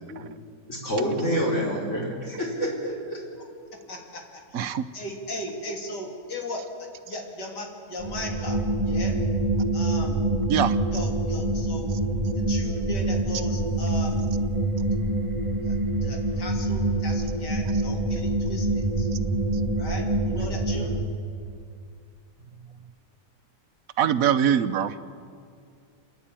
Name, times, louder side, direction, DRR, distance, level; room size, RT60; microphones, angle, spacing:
voice 1, 0.7-3.2, equal, 45° left, -4 dB, 5.3 m, -27 dB
voice 2, 3.9-4.2 4.6-4.7 4.9-6.6 7.1-8.6 8.9-9.1 9.7-10.2 10.9-11.9 12.3-14.2 16.0-19.1 19.8-20.9, left 1 dB, 85° left, 0 dB, 3.5 m, -37 dB
voice 3, 4.5-4.9 10.5-10.8 24.0-24.9, right 9 dB, 60° right, 12 dB, 1.1 m, -22 dB
sound 1, 8.0-21.0, right 2 dB, 20° right, 1.4 m, -26 dB
28.0 x 10.5 x 9.0 m, 2.3 s
omnidirectional pair, 1.8 m